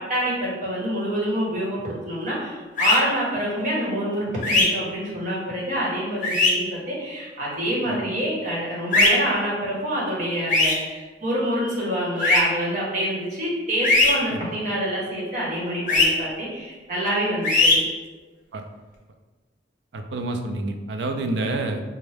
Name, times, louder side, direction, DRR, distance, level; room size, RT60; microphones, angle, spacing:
voice 1, 0.1-17.8, equal, 45° right, -6 dB, 1.3 m, -26 dB
sound 1, 2.8-3.0 4.4-4.7 6.2-6.5 8.9-9.1 10.5-10.7 12.2-12.4 13.8-14.1 15.9-16.1 17.4-17.8, left 3 dB, 45° left, 0.7 m, -18 dB
voice 2, 19.9-21.8, right 2 dB, 70° right, 5 dB, 0.4 m, -27 dB
4.3 x 2.2 x 3.3 m, 1.3 s
head